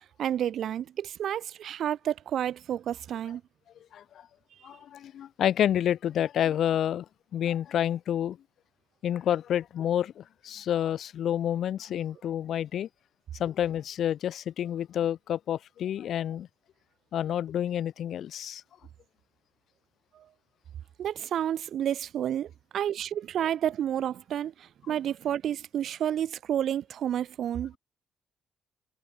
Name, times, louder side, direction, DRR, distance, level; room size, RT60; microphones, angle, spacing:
voice 1, 0.2-3.4 20.1-20.3 21.0-27.8, right 10 dB, 70° right, 0.4 m, -30 dB
voice 2, 3.9-4.3 4.6-7.1 7.3-8.4 9.0-12.9 13.4-16.5 17.1-18.6, left 10 dB, 70° left, 0.4 m, -29 dB
cardioid pair, 90°, 0 cm